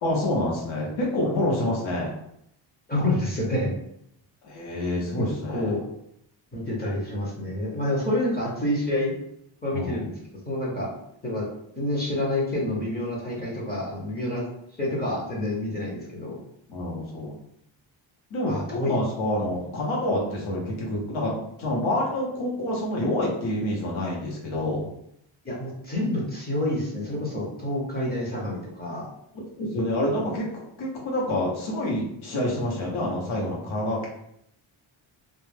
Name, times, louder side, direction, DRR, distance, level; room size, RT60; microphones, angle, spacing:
voice 1, 0.0-2.1 4.4-5.7 9.7-10.1 16.7-17.4 18.3-24.9 29.6-34.1, left 1 dB, 75° left, -3 dB, 0.9 m, -27 dB
voice 2, 2.9-3.7 5.2-5.8 6.5-9.1 9.6-10.2 10.5-10.9 11.2-11.5 11.8-14.4 14.8-16.4 18.5-19.0 25.4-29.1, left 1 dB, 20° left, -5 dB, 0.5 m, -28 dB
2.3 x 2.1 x 3.2 m, 0.73 s
wide cardioid pair, 180°, 48 cm